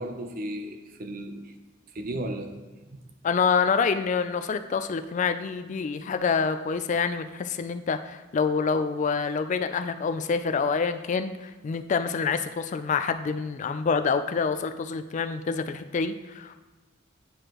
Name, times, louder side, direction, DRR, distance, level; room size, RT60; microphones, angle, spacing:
voice 1, 0.0-1.5 1.9-2.6, right 1 dB, 45° right, 6 dB, 0.6 m, -34 dB
voice 2, 3.2-16.6, left 5 dB, 40° left, 9 dB, 0.3 m, -27 dB
9.4 x 4.8 x 3.0 m, 1.2 s
head